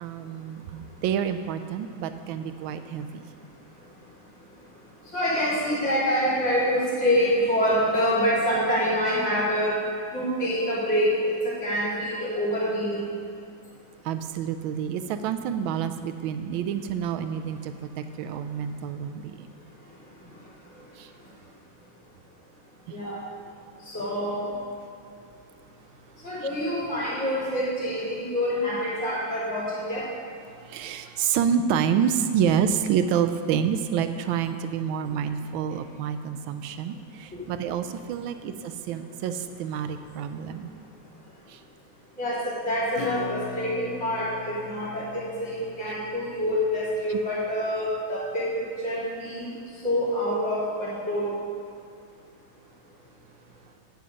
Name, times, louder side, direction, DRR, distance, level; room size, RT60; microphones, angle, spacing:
voice 1, 0.0-3.2 14.0-17.7 18.2-19.3 21.0-21.1 30.7-40.7, right 8 dB, 85° right, 9 dB, 1.4 m, -28 dB
voice 2, 5.1-9.8 10.1-11.1 11.4-13.0 22.9-23.2 23.9-24.5 26.2-30.0 42.2-49.5 49.8-51.3, equal, 35° left, -9 dB, 3.3 m, -26 dB
Acoustic guitar / Strum, 42.9-47.2, left 6 dB, 70° left, 1.1 m, -40 dB
9.5 x 7.7 x 5.1 m, 2.3 s
omnidirectional pair, 2.2 m